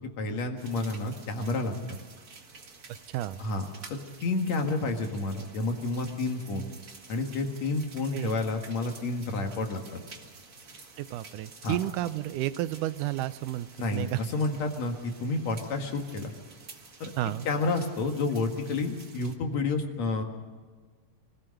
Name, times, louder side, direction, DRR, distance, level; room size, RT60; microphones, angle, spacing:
voice 1, 0.0-1.7 3.4-3.7 4.2-6.7 7.1-10.0 11.6-11.8 13.8-16.3 17.0-17.1 17.5-20.2, left 3 dB, 60° left, 4 dB, 2.9 m, -30 dB
sound 1, 0.6-19.4, right 4 dB, 35° right, 1.4 m, -51 dB
voice 2, 3.1-3.4 8.1-8.4 11.0-14.2 17.2-17.5, right 14 dB, 85° right, 14 dB, 2.3 m, -31 dB
25.0 x 16.5 x 6.5 m, 1.5 s
omnidirectional pair, 3.5 m